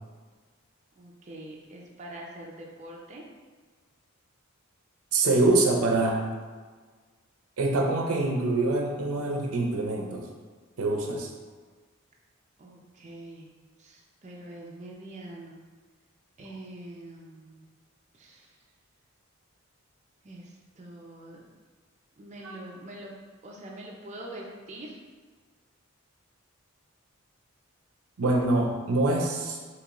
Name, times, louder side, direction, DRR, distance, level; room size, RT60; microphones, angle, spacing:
voice 1, 1.0-3.2 12.6-13.5 13.8-15.7 16.4-17.6 18.1-18.6 20.2-21.4 22.2-23.2 23.4-25.0, right 1 dB, 35° right, -2 dB, 0.4 m, -44 dB
voice 2, 5.1-6.2 7.6-10.3 10.8-11.3 22.4-22.6 28.2-29.6, right 2 dB, 85° right, 1 dB, 0.6 m, -25 dB
3.6 x 3.0 x 2.9 m, 1.5 s
head